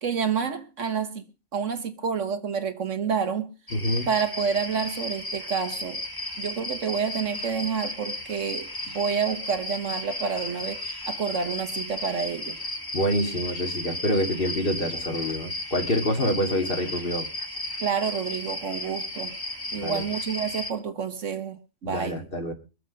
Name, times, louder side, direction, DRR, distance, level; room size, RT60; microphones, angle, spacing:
voice 1, 0.0-1.2 1.5-3.5 4.1-6.0 6.4-12.6 17.8-19.3 19.7-22.3, right 6 dB, 60° right, 1.6 m, -29 dB
voice 2, 3.7-4.1 12.9-17.3 19.8-20.0 21.8-22.5, equal, 40° left, 2.4 m, -26 dB
sound 1, 3.7-20.7, left 1 dB, 15° left, 1.7 m, -34 dB
23.0 x 7.7 x 5.3 m
omnidirectional pair, 1.4 m